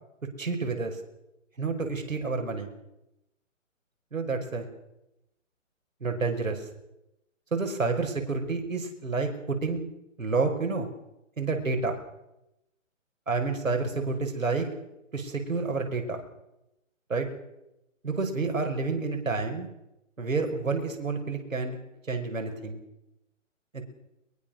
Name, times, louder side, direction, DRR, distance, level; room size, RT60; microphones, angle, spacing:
voice 1, 0.4-1.0 1.6-2.7 4.1-4.7 6.0-6.6 7.5-9.8 10.2-10.9 11.4-12.0 13.3-14.7 15.1-16.2 17.1-17.3 18.0-19.7 20.2-21.8 22.1-22.8 23.7-23.8, right 4 dB, 80° right, 4 dB, 5.6 m, -29 dB
22.5 x 21.0 x 6.5 m, 0.90 s
figure-of-eight pair, 140°, 39 cm